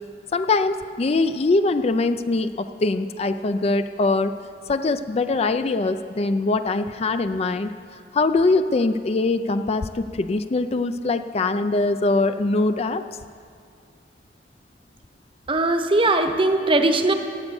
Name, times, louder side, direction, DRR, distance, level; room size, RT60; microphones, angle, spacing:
voice 1, 0.3-4.3 4.7-7.7 8.1-13.0, left 3 dB, 35° left, 10 dB, 0.4 m, -22 dB
voice 2, 15.5-17.1, right 2 dB, 30° right, 7 dB, 0.9 m, -19 dB
16.5 x 9.1 x 7.0 m, 2.3 s
head